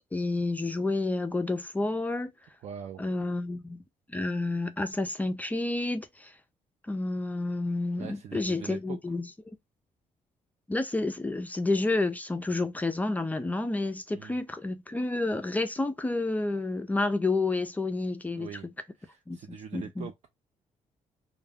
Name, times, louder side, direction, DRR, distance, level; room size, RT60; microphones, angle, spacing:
voice 1, 0.1-2.3 3.0-3.8 4.1-6.3 6.9-9.6 10.7-18.5 19.3-19.4 19.7-20.1, left 2 dB, 10° left, 0.3 m, -30 dB
voice 2, 2.6-3.0 8.0-9.2 14.1-14.4 18.3-18.7 19.0-20.3, right 8 dB, 60° right, 0.4 m, -43 dB
2.2 x 2.1 x 3.3 m
cardioid pair, 125°, 13 cm